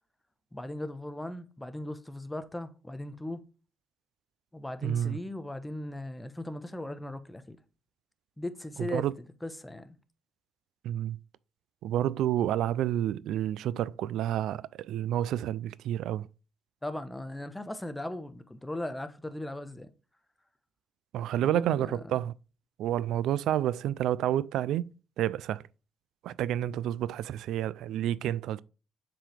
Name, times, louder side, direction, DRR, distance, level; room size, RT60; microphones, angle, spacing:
voice 1, 0.5-3.4 4.5-7.6 8.4-9.1 9.4-10.0 16.8-19.9 21.4-22.1, left 1 dB, 10° left, 1.0 m, -38 dB
voice 2, 4.8-5.2 8.8-9.1 10.8-11.2 11.8-16.3 21.1-22.3 22.8-24.9 25.2-25.6 26.2-28.6, right 12 dB, 85° right, 0.3 m, -29 dB
7.4 x 4.7 x 3.4 m
cardioid pair, 90°, 0 cm